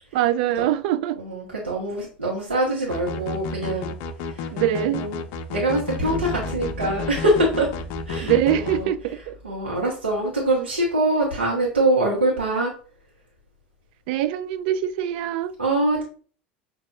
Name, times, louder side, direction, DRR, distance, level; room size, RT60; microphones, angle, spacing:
voice 1, 0.1-1.2 4.5-5.0 8.2-9.4 14.1-15.5, right 11 dB, 60° right, 0.4 m, -23 dB
voice 2, 1.2-3.9 4.3-5.2 5.5-7.7 8.1-8.9 9.4-12.7 15.6-16.0, right 1 dB, 85° right, 1.1 m, -24 dB
sound 1, 2.9-8.8, left 4 dB, 55° left, 0.5 m, -31 dB
sound 2, 6.0-9.4, equal, 40° right, 1.1 m, -37 dB
6.2 x 2.6 x 2.5 m
figure-of-eight pair, 75°, 6 cm